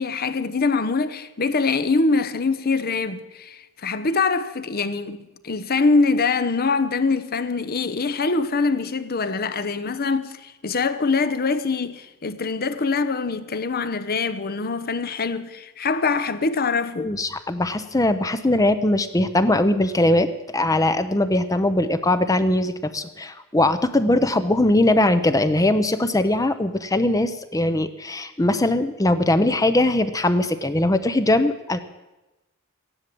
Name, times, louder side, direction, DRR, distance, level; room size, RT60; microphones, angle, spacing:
voice 1, 0.0-5.2 5.4-17.1, left 4 dB, 45° left, 0.9 m, -23 dB
voice 2, 17.0-31.8, left 1 dB, 15° left, 0.7 m, -21 dB
15.0 x 11.0 x 7.7 m
head